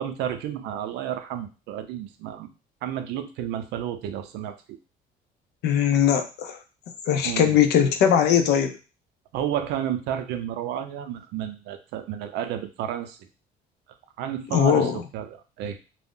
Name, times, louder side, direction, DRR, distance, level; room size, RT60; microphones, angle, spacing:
voice 1, 0.0-2.5 2.8-4.6 7.2-7.6 9.3-13.2 14.2-15.8, right 10 dB, 85° right, 8 dB, 0.5 m, -31 dB
voice 2, 5.6-6.6 7.1-8.8 14.5-15.0, left 8 dB, 75° left, 6 dB, 0.5 m, -20 dB
2.4 x 2.0 x 3.6 m, 0.31 s
cardioid pair, 110°, 17 cm